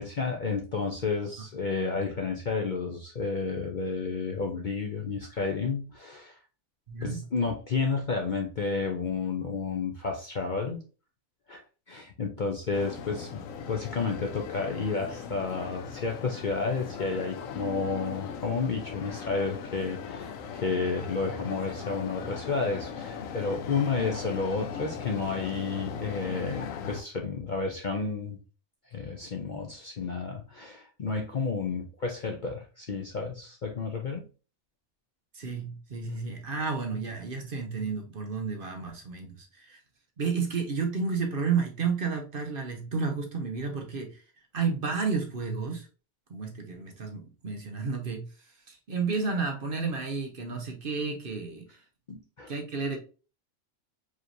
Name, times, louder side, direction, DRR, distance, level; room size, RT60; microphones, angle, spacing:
voice 1, 0.0-6.4 7.0-10.8 11.5-28.4 28.9-34.3 52.1-52.5, left 4 dB, 50° left, 2 dB, 0.6 m, -31 dB
voice 2, 6.9-7.2 35.3-39.8 40.2-44.2 44.5-45.9 46.3-48.3 48.7-51.7 52.5-53.0, right 5 dB, 45° right, 3 dB, 0.9 m, -31 dB
sound 1, 12.7-27.0, left 6 dB, 80° left, 1.0 m, -39 dB
4.8 x 3.0 x 2.6 m, 0.34 s
omnidirectional pair, 1.4 m